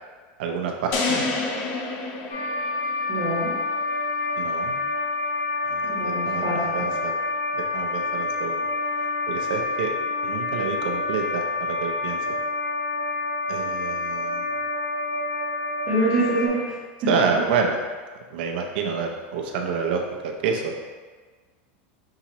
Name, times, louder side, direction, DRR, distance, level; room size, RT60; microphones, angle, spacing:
voice 1, 0.4-1.2 4.4-4.8 5.7-7.1 7.5-8.7 9.3-9.9 10.2-12.2 13.5-14.5 17.1-17.8 18.3-20.7, right 5 dB, 65° right, 2 dB, 0.6 m, -28 dB
sound 1, 0.9-3.2, left 3 dB, 35° left, 0.5 m, -28 dB
sound 2, 2.3-16.5, left 3 dB, 60° left, 1.1 m, -28 dB
voice 2, 3.1-3.5 5.9-6.9 15.9-16.8, right 2 dB, 30° right, -9 dB, 1.2 m, -25 dB
5.6 x 3.0 x 2.9 m, 1.4 s
supercardioid pair, 170°, 6 cm